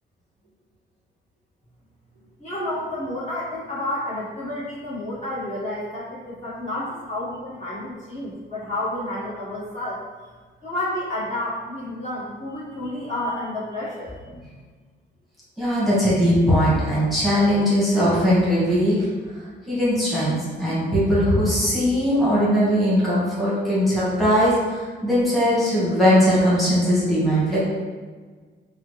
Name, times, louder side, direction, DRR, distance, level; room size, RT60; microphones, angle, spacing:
voice 1, 2.4-10.0 10.6-14.2, left 1 dB, 35° left, -9 dB, 1.3 m, -30 dB
voice 2, 15.6-19.1 19.7-27.6, equal, ahead, -9 dB, 1.2 m, -20 dB
3.6 x 2.1 x 3.0 m, 1.5 s
cardioid pair, 90°, 20 cm